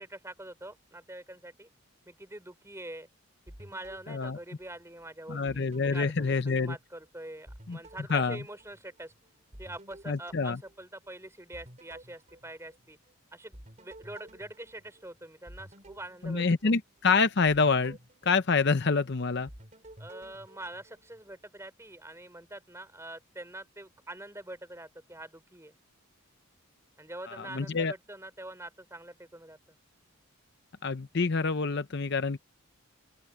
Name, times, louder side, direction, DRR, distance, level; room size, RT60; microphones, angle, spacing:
voice 1, 0.0-1.7 2.1-3.1 3.6-9.1 9.6-13.0 13.3-16.7 20.0-25.7 27.0-29.8, right 1 dB, 10° right, 4.7 m, -45 dB
sound 1, 3.5-5.1 5.5-7.1 7.5-11.1 11.5-13.1 13.5-17.0 17.5-19.1 19.5-21.4, right 1 dB, 30° right, 4.0 m, -53 dB
voice 2, 4.1-4.4 5.3-6.8 7.7-7.8 8.1-8.4 10.1-10.6 16.2-18.0 18.3-19.5 27.3-27.9 30.8-32.4, left 4 dB, 50° left, 0.7 m, -27 dB
open air
head